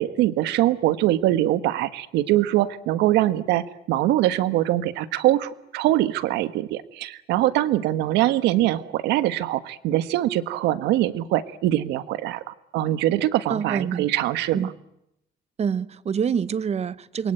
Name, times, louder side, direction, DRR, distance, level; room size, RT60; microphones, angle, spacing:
voice 1, 0.0-14.7, right 14 dB, 90° right, 1.6 m, -23 dB
voice 2, 13.5-14.1 14.5-14.7 15.6-17.3, right 7 dB, 40° right, 1.2 m, -26 dB
28.0 x 23.0 x 9.1 m
cardioid pair, 110°, 17 cm